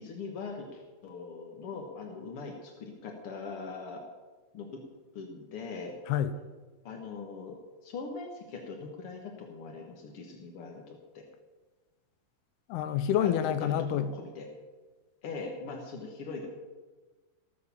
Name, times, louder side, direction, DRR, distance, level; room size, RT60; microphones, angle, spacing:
voice 1, 0.0-4.0 4.5-4.8 5.1-5.9 6.8-7.6 7.8-11.2 13.2-14.5 15.2-16.5, left 4 dB, 65° left, 2 dB, 1.4 m, -41 dB
voice 2, 12.7-14.1, left 10 dB, 80° left, 11 dB, 2.7 m, -28 dB
18.5 x 6.9 x 7.1 m, 1.3 s
omnidirectional pair, 4.7 m